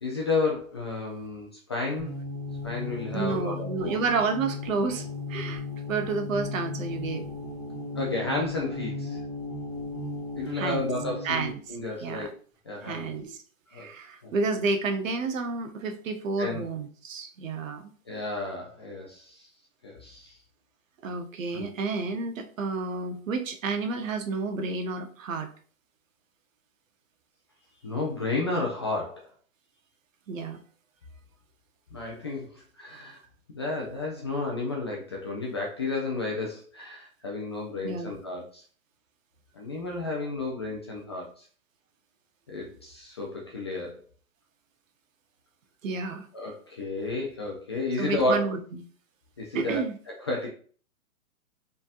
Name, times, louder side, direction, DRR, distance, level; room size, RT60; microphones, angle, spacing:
voice 1, 0.0-2.2 2.6-4.0 8.0-9.2 10.4-12.3 12.7-13.1 13.7-13.9 14.2-14.3 16.4-16.6 18.1-19.5 19.8-20.4 21.5-21.7 27.8-29.3 31.9-33.2 33.5-38.6 39.5-41.4 42.5-44.0 46.3-48.5 49.4-49.8 50.2-50.5, left 2 dB, 20° left, -2 dB, 0.3 m, -32 dB
sound 1, 2.0-11.3, left 3 dB, 10° right, 1.1 m, -36 dB
voice 2, 3.1-5.6 5.9-7.3 10.5-10.9 11.2-12.3 12.8-13.4 13.7-17.9 21.0-25.5 30.3-30.6 37.8-38.1 45.8-46.3 48.0-48.6 49.5-50.0, right 4 dB, 65° right, 6 dB, 1.0 m, -30 dB
5.1 x 3.5 x 2.4 m, 0.43 s
hypercardioid pair, 140°, 43 cm